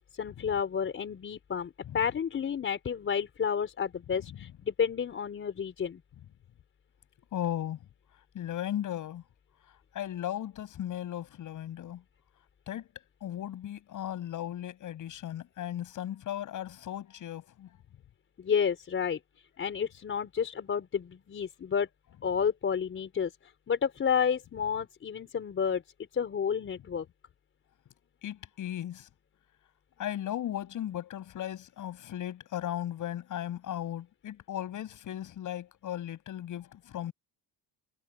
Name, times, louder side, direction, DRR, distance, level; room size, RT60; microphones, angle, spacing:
voice 1, 0.1-6.0 18.4-19.2 19.6-21.9 22.2-25.8 26.1-27.0, left 7 dB, 30° left, 4.8 m, -31 dB
voice 2, 7.3-7.8 8.3-9.2 9.9-12.0 12.7-12.9 13.2-17.7 28.2-29.1 30.0-37.1, left 11 dB, 45° left, 7.6 m, -36 dB
cardioid pair, 165°, 42 cm